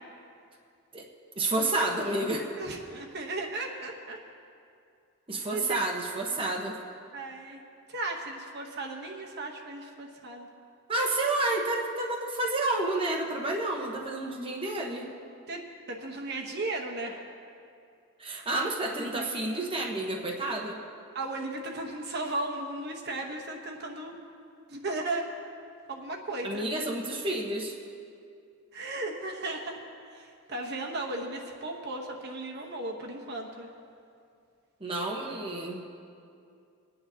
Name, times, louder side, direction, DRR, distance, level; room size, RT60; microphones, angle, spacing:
voice 1, 1.4-2.5 5.3-6.8 10.9-15.1 18.2-20.8 26.4-27.8 34.8-35.8, right 2 dB, 25° right, -2 dB, 1.1 m, -30 dB
voice 2, 2.6-4.2 5.4-5.8 7.1-7.6 7.9-10.5 15.5-15.6 15.9-17.2 19.1-19.4 21.1-24.1 24.7-25.3 25.9-26.6 28.7-29.8 30.1-33.7, right 2 dB, 50° right, 1 dB, 1.0 m, -35 dB
24.5 x 9.6 x 2.8 m, 2.4 s
head